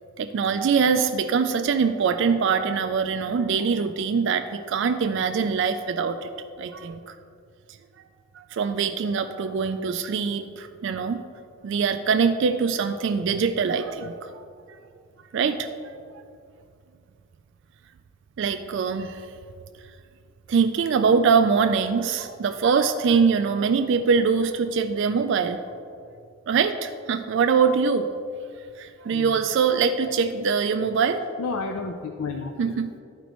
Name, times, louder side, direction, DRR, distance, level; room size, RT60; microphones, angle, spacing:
voice 1, 0.2-6.3 6.6-7.1 8.3-11.2 11.6-14.3 15.3-15.8 18.4-19.3 20.5-25.6 26.5-28.1 28.8-31.2 32.6-32.9, right 5 dB, 55° right, 8 dB, 0.3 m, -23 dB
voice 2, 31.4-33.0, left 4 dB, 75° left, 3 dB, 0.5 m, -32 dB
12.0 x 5.1 x 3.0 m, 2.4 s
head